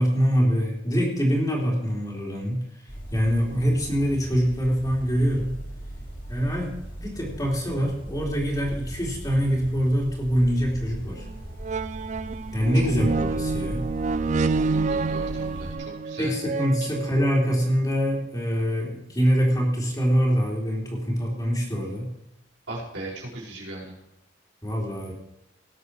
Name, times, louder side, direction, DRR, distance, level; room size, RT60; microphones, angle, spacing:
voice 1, 0.0-2.6 3.1-5.6 6.3-11.2 12.5-13.9 16.2-22.1 24.6-25.1, equal, 20° left, -2 dB, 3.7 m, -24 dB
sound 1, 2.9-15.7, right 1 dB, 45° left, 3.9 m, -38 dB
sound 2, 11.2-11.3 11.6-17.5 18.2-18.3, right 4 dB, 40° right, 0.4 m, -28 dB
voice 2, 14.4-16.3 16.8-16.9 22.7-24.0, right 2 dB, 85° right, -4 dB, 5.3 m, -38 dB
18.0 x 8.2 x 4.8 m, 0.92 s
head